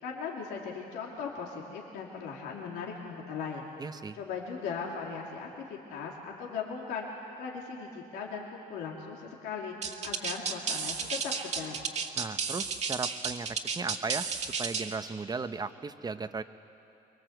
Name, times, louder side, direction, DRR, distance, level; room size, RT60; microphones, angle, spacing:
voice 1, 0.0-3.6 4.1-7.1 7.4-9.7 10.0-11.8, left 5 dB, 85° left, -2 dB, 2.7 m, -38 dB
voice 2, 3.8-4.2 12.2-14.3 14.6-16.4, right 4 dB, 25° right, 11 dB, 0.9 m, -36 dB
sound 1, 9.8-15.0, right 5 dB, 40° right, 1.9 m, -33 dB
24.0 x 22.5 x 7.9 m, 2.8 s
cardioid pair, 110°, 17 cm